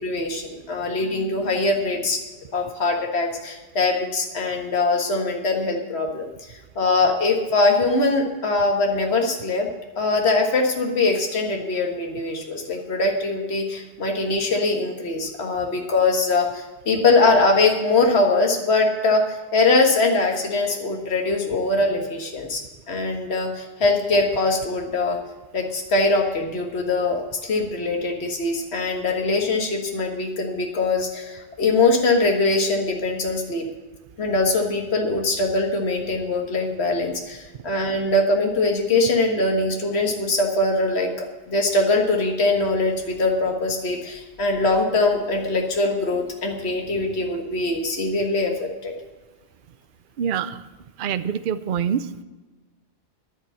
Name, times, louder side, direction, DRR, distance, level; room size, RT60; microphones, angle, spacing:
voice 1, 0.0-2.2 2.5-6.3 6.8-9.7 10.0-22.6 22.9-25.2 25.5-33.6 34.2-48.9, left 3 dB, 70° left, 1 dB, 1.9 m, -22 dB
voice 2, 50.2-50.6 51.0-52.1, right 8 dB, 55° right, 13 dB, 0.7 m, -25 dB
11.0 x 9.6 x 7.2 m, 1.2 s
omnidirectional pair, 1.1 m